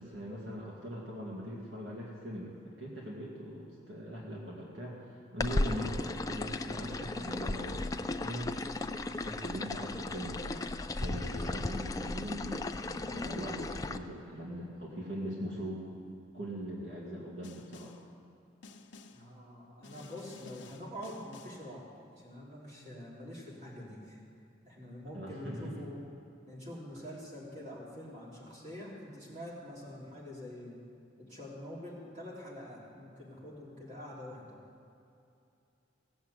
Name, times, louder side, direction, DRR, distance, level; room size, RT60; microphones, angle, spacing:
voice 1, 0.0-2.5 2.8-8.5 8.9-10.6 11.0-15.8 16.3-18.0 25.1-25.8, equal, 70° right, -4 dB, 2.2 m, -41 dB
sound 1, 5.4-14.0, left 2 dB, 20° left, 0.4 m, -35 dB
Snare drum, 17.4-18.1 18.6-19.3 19.8-21.7, left 3 dB, 70° left, 0.8 m, -52 dB
voice 2, 19.1-21.9 22.1-24.2 24.7-26.0 26.5-30.8 31.3-34.6, left 1 dB, 40° right, -5 dB, 3.4 m, -45 dB
17.5 x 7.2 x 8.1 m, 2.6 s
head